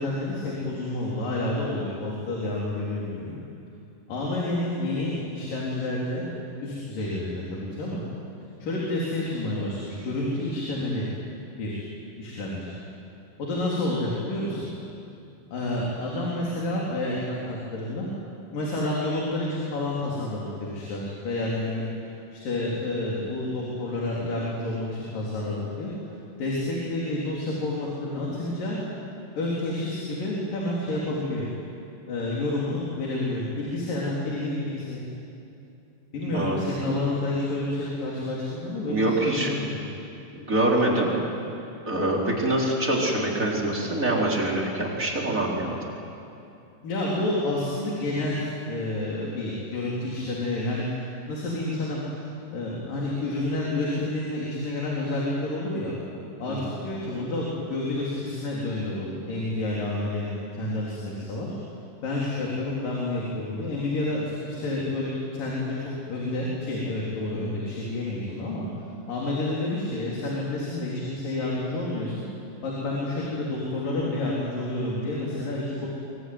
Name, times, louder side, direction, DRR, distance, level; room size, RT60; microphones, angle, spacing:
voice 1, 0.0-3.3 4.1-6.3 6.6-8.0 8.6-11.1 11.6-11.8 12.2-12.7 13.4-14.7 15.5-18.1 18.5-21.9 22.3-28.8 29.4-31.5 32.1-35.0 36.1-39.7 46.8-52.0 52.5-55.9 56.4-61.6 62.0-68.6 69.1-72.2 72.6-75.9, left 2 dB, 75° left, -4 dB, 5.2 m, -29 dB
voice 2, 38.8-39.5 40.3-41.2 41.9-45.8, right 1 dB, 25° right, -2 dB, 4.1 m, -25 dB
24.5 x 23.5 x 9.5 m, 2.7 s
omnidirectional pair, 3.9 m